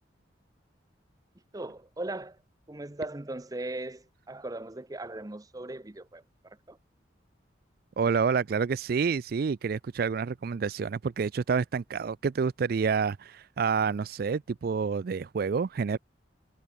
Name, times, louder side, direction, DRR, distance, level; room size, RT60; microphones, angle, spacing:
voice 1, 1.5-2.4 2.7-6.8, right 2 dB, 20° right, 0.7 m, -38 dB
voice 2, 8.0-16.0, right 5 dB, 55° right, 0.4 m, -28 dB
head